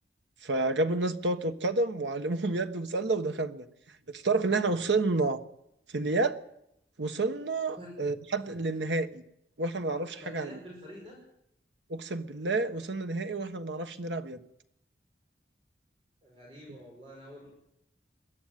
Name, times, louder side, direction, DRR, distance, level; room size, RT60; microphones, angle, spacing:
voice 1, 0.4-3.7 4.1-5.4 5.9-6.4 7.0-9.2 9.6-10.6 11.9-14.4, right 3 dB, 80° right, 8 dB, 1.3 m, -29 dB
voice 2, 10.2-11.1 16.2-17.5, equal, 30° right, -2 dB, 5.5 m, -47 dB
22.0 x 13.0 x 9.3 m, 0.81 s
head